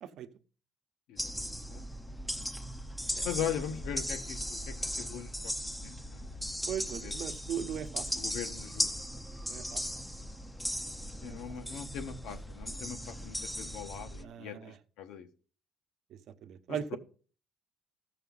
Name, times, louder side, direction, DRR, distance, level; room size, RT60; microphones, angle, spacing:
sound 1, 1.2-14.2, equal, 5° left, 0.5 m, -38 dB
voice 1, 3.2-5.5 5.8-6.3 7.0-7.1 8.2-8.9 11.2-15.3 16.7-17.0, left 9 dB, 85° left, 1.3 m, -40 dB
voice 2, 6.7-8.1 9.5-9.8 11.2-11.4 11.7-11.8 14.2-14.8 16.4-17.0, right 9 dB, 60° right, 0.9 m, -38 dB
14.0 x 6.7 x 4.0 m
cardioid pair, 150°, 0 cm